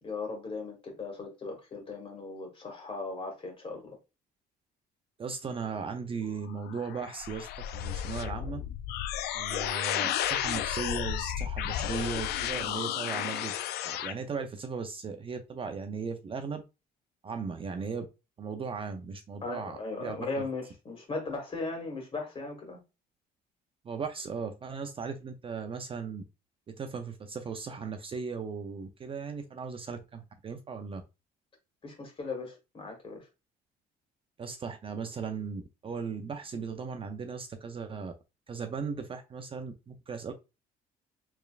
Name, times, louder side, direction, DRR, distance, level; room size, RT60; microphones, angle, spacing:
voice 1, 0.0-4.0 19.4-22.8 31.8-33.3, left 3 dB, 35° left, 1.9 m, -38 dB
voice 2, 5.2-8.6 9.3-13.5 13.8-16.6 17.2-18.1 18.4-20.4 23.8-26.2 26.7-31.0 34.4-38.1 38.5-40.3, right 5 dB, 30° right, 0.5 m, -37 dB
sound 1, 6.4-14.1, left 11 dB, 75° left, 0.4 m, -33 dB
4.4 x 3.3 x 2.3 m
cardioid pair, 110°, 17 cm